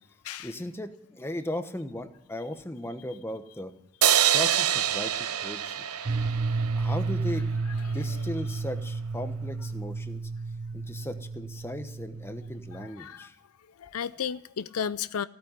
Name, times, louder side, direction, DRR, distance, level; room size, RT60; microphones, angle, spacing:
voice 1, 0.4-3.7 4.3-5.8 6.7-7.5 7.9-10.2 10.7-13.3, left 1 dB, 10° left, 8 dB, 1.0 m, -37 dB
sound 1, 4.0-7.3, right 10 dB, 85° right, 0.8 m, -26 dB
voice 2, 6.0-6.3 7.9-8.0 12.7-13.3 13.8-15.3, left 7 dB, 80° left, 15 dB, 0.5 m, -34 dB
sound 2, 6.1-12.9, right 3 dB, 50° right, 0.6 m, -32 dB
16.5 x 8.9 x 9.8 m, 0.84 s
head